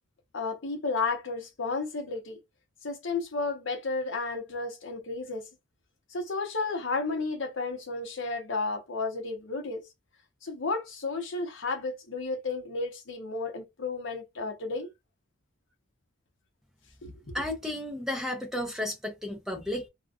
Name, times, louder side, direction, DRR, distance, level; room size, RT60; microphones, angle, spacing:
voice 1, 0.3-2.4 2.8-5.4 6.1-9.8 10.4-14.9 17.0-17.3, left 3 dB, 60° left, 0.8 m, -32 dB
voice 2, 17.3-19.9, left 1 dB, ahead, 0.5 m, -33 dB
2.4 x 2.3 x 2.3 m
head